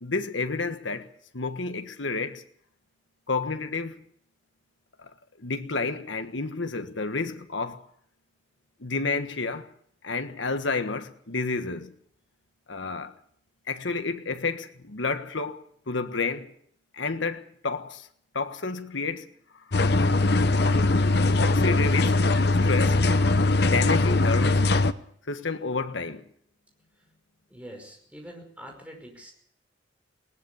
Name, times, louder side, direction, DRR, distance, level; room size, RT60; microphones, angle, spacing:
voice 1, 0.0-2.4 3.3-4.0 5.0-5.1 5.4-7.8 8.8-9.7 10.0-11.9 12.7-13.1 13.7-16.5 16.9-18.1 18.3-19.3 19.5-19.6 21.4-22.3 22.6-23.0 23.6-24.7 25.3-26.2, left 4 dB, 75° left, 1.5 m, -30 dB
sound 1, 19.7-24.9, left 2 dB, 55° left, 0.8 m, -21 dB
voice 2, 27.5-29.3, equal, 5° right, 5.4 m, -44 dB
20.0 x 19.0 x 7.0 m
head